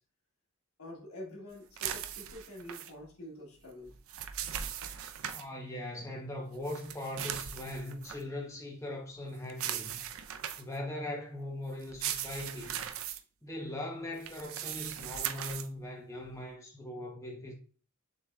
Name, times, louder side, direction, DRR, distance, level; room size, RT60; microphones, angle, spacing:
voice 1, 0.8-4.0, left 1 dB, 75° left, 1.5 m, -46 dB
sound 1, 1.8-2.9 3.9-5.4 6.6-8.2 9.5-10.8 11.8-13.2 14.2-15.7, right 10 dB, 65° right, 0.4 m, -38 dB
voice 2, 5.3-10.0 10.6-12.9 13.4-17.5, left 1 dB, 15° left, 1.0 m, -40 dB
6.6 x 3.1 x 2.4 m
head